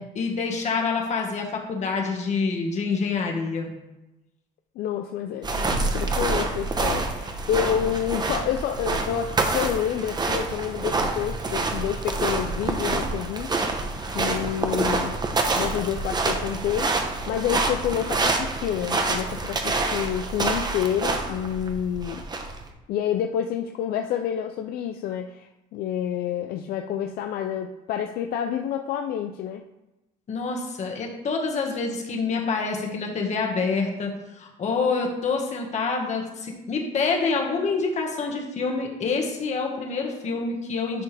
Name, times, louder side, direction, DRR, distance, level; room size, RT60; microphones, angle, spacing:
voice 1, 0.2-3.7 30.3-34.1 34.4-41.0, left 4 dB, 45° left, 1 dB, 1.7 m, -27 dB
voice 2, 4.8-13.5 14.1-15.2 15.5-22.2 22.9-29.6, left 9 dB, 75° left, 5 dB, 0.5 m, -28 dB
sound 1, 5.4-22.7, right 3 dB, 25° right, 1.0 m, -27 dB
10.5 x 4.5 x 3.5 m, 0.99 s
cardioid pair, 105°, 16 cm